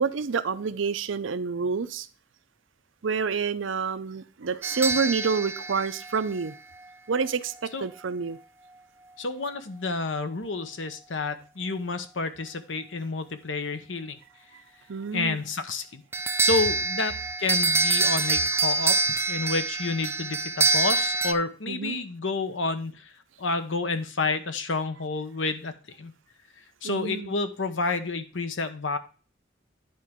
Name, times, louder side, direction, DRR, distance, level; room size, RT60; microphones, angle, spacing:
voice 1, 0.0-2.1 3.0-6.5 7.1-8.4 14.9-15.4 21.7-22.0 26.8-27.3, right 5 dB, 90° right, 0.6 m, -28 dB
sound 1, 4.6-6.9 16.1-21.3, right 3 dB, 15° right, 0.4 m, -26 dB
voice 2, 9.2-14.2 15.1-16.0 16.4-23.1 23.4-26.1 26.8-29.0, left 3 dB, 75° left, 1.0 m, -30 dB
10.5 x 4.5 x 3.6 m
head